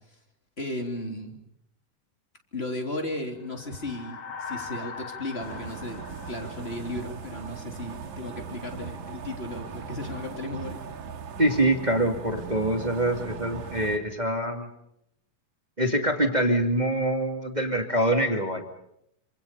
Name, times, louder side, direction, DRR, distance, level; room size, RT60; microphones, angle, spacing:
voice 1, 0.6-1.3 2.5-10.8, left 1 dB, 20° left, 3 dB, 3.5 m, -35 dB
sound 1, 3.4-7.9, left 5 dB, 60° left, 2.9 m, -41 dB
sound 2, 5.4-14.0, right 6 dB, 65° right, 3.5 m, -39 dB
voice 2, 11.4-14.7 15.8-18.6, right 1 dB, 15° right, 4 dB, 1.9 m, -25 dB
27.0 x 26.5 x 5.4 m, 0.76 s
omnidirectional pair, 3.8 m